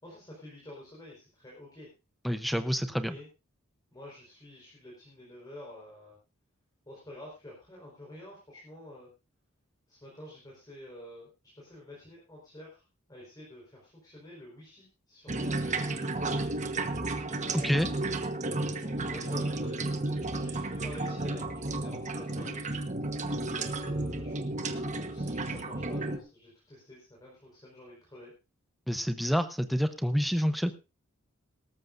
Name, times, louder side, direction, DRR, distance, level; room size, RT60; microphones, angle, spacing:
voice 1, 0.0-1.9 3.0-3.3 3.9-6.2 6.9-9.1 9.9-11.3 11.6-12.8 13.1-16.4 17.4-18.0 18.8-22.8 23.5-24.6 25.1-28.3, left 1 dB, 20° left, -4 dB, 4.6 m, -49 dB
voice 2, 2.2-3.2 17.5-17.9 28.9-30.7, equal, ahead, 10 dB, 0.8 m, -28 dB
sound 1, 15.3-26.2, right 2 dB, 35° right, 1.3 m, -33 dB
18.5 x 13.5 x 2.6 m, 0.29 s
head